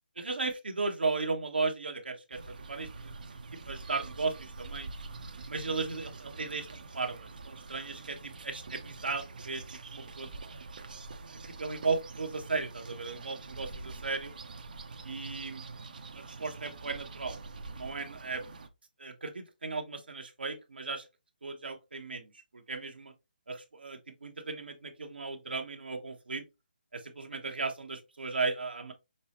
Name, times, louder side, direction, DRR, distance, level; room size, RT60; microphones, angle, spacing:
voice 1, 0.2-3.2 3.6-4.9 5.5-9.6 9.9-10.3 11.3-14.3 15.0-15.6 16.1-17.4 17.7-18.4 19.0-21.0 21.4-23.1 23.5-26.4 26.9-28.9, right 4 dB, 85° right, 1.0 m, -36 dB
sound 1, 2.3-18.7, right 3 dB, 60° right, 0.7 m, -45 dB
5.4 x 2.0 x 2.9 m
hypercardioid pair, 160°, 5 cm